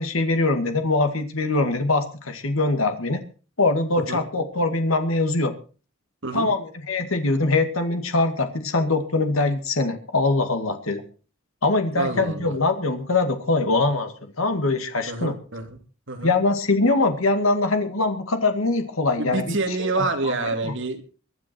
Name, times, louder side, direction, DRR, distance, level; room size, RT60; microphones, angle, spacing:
voice 1, 0.0-3.2 3.6-5.5 6.3-11.0 11.6-15.3 16.2-20.7, left 2 dB, 85° left, 7 dB, 2.1 m, -23 dB
voice 2, 11.9-12.5 15.1-15.8 16.1-16.3 19.2-21.1, right 2 dB, 65° right, 4 dB, 3.1 m, -27 dB
23.5 x 9.9 x 4.5 m, 0.37 s
head